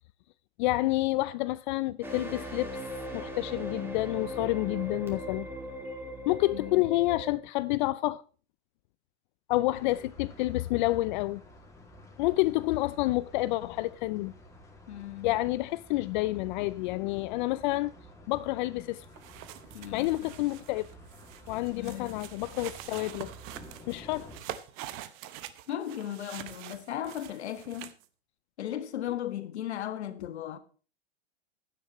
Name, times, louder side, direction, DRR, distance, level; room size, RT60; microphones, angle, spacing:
voice 1, 0.6-2.7 3.1-5.5 6.3-8.2 9.5-11.4 12.2-14.3 15.2-17.9 18.3-19.0 19.9-20.9 21.5-23.3 23.9-24.3, left 19 dB, 45° left, 0.5 m, -29 dB
sound 1, 2.0-7.3, equal, 5° right, 2.4 m, -39 dB
voice 2, 6.5-6.9 14.9-15.3 19.7-20.1 21.7-22.2 25.7-28.0 28.6-30.6, left 11 dB, 80° left, 1.6 m, -36 dB
sound 2, 9.7-24.4, equal, 10° left, 2.4 m, -52 dB
sound 3, 19.0-28.1, right 13 dB, 40° right, 1.0 m, -45 dB
15.5 x 11.0 x 3.1 m
hypercardioid pair, 125°, 33 cm